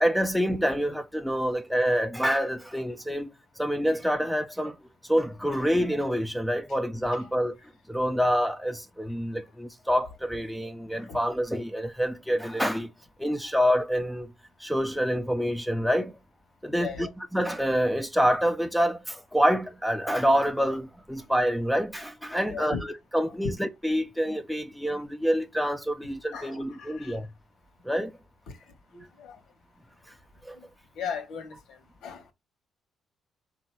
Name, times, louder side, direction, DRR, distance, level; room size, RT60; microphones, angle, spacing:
voice 1, 0.0-3.3 3.6-4.8 5.0-7.5 7.9-12.9 13.2-14.3 14.6-16.2 16.6-27.3 27.8-28.1 30.4-30.6, equal, ahead, 0.6 m, -27 dB
voice 2, 16.8-17.1 22.4-22.8 26.3-27.2 28.5-28.6 28.9-29.4 30.9-32.3, left 6 dB, 80° left, 1.3 m, -38 dB
3.9 x 2.8 x 4.5 m
cardioid pair, 90°, 0 cm